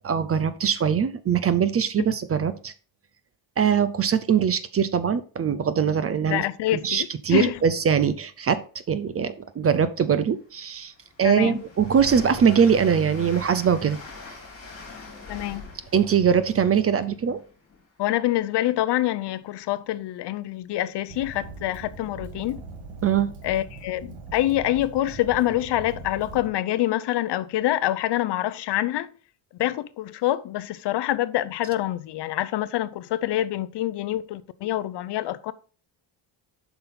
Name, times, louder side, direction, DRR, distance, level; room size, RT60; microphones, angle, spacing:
voice 1, 0.0-2.7 3.6-6.4 6.7-8.6 8.9-10.9 11.2-14.0 15.9-17.4 23.0-23.3, right 7 dB, 30° right, 0.5 m, -22 dB
voice 2, 6.3-7.6 11.2-11.6 15.3-15.7 18.0-22.6 23.4-29.1 29.6-35.5, left 14 dB, 60° left, 0.6 m, -26 dB
Train, 10.4-18.1, left 3 dB, 30° left, 3.1 m, -44 dB
Fire, 21.1-26.5, right 3 dB, 80° right, 1.8 m, -41 dB
7.7 x 5.8 x 4.2 m
cardioid pair, 160°, 47 cm